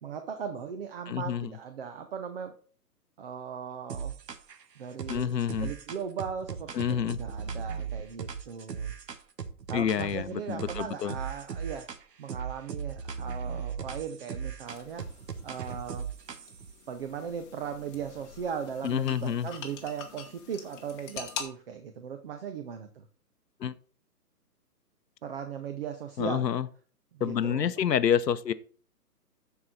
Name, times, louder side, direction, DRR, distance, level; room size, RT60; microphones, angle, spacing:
voice 1, 0.0-2.5 3.2-4.1 4.8-5.3 5.6-8.9 9.7-11.9 12.2-15.0 15.4-16.1 16.9-23.1 25.2-26.5 27.2-27.7, right 7 dB, 35° right, 0.8 m, -38 dB
voice 2, 1.1-1.5 5.1-5.7 6.7-7.2 9.7-11.2 18.8-19.5 23.6-23.7 26.2-26.7 27.2-28.5, left 9 dB, 80° left, 0.9 m, -28 dB
sound 1, 3.9-4.6 5.0-10.3 10.6-12.0 12.3-16.7, right 6 dB, 80° right, 1.1 m, -37 dB
sound 2, 14.7-21.4, left 7 dB, 20° left, 1.0 m, -45 dB
13.0 x 4.7 x 4.1 m
hypercardioid pair, 150°, 48 cm